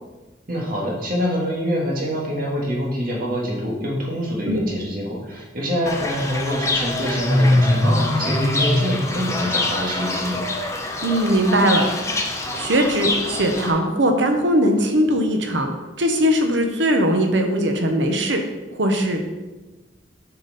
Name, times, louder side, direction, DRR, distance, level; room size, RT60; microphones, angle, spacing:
voice 1, 0.5-10.4, equal, 50° right, -2 dB, 1.8 m, -25 dB
Fowl / Bird, 5.9-13.7, left 1 dB, 15° left, 0.8 m, -23 dB
voice 2, 11.0-11.8 12.6-15.7 16.0-18.4 18.7-19.5, equal, 85° right, 4 dB, 1.0 m, -20 dB
6.9 x 5.8 x 4.1 m, 1.1 s
head